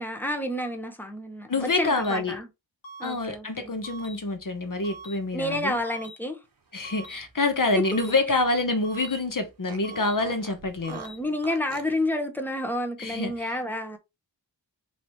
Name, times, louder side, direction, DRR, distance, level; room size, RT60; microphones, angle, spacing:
voice 1, 0.0-2.5 3.0-3.7 5.3-6.4 7.7-7.8 10.9-14.0, left 1 dB, 5° left, 0.9 m, -30 dB
voice 2, 1.5-2.4 3.0-5.8 6.7-11.0 13.0-13.6, left 3 dB, 45° left, 0.9 m, -27 dB
sound 1, 1.8-2.2 2.8-3.2 3.8-4.2 4.8-5.2 5.8-6.2 6.8-7.2 7.8-8.2 8.8-9.2 9.8-10.2 10.8-11.2, right 2 dB, 85° left, 1.1 m, -43 dB
Fart, 6.7-8.7 9.0-9.1 9.7-12.0, right 4 dB, 50° right, 0.9 m, -46 dB
3.1 x 3.0 x 4.1 m
wide cardioid pair, 70°, 45 cm